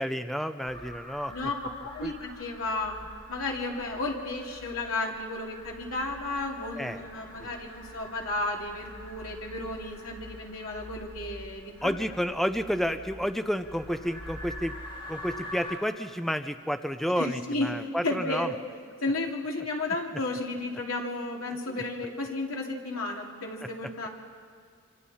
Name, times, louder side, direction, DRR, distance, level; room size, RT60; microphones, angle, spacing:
voice 1, 0.0-1.3 2.0-2.1 6.8-7.0 7.4-7.5 11.8-14.7 15.1-18.5, equal, ahead, 9 dB, 0.5 m, -30 dB
sound 1, 0.6-15.8, left 1 dB, 25° left, 2.6 m, -45 dB
voice 2, 1.9-3.0 3.3-12.0 17.2-18.6 19.0-24.1, left 2 dB, 80° left, -1 dB, 2.8 m, -33 dB
26.5 x 26.0 x 4.3 m, 2.2 s
head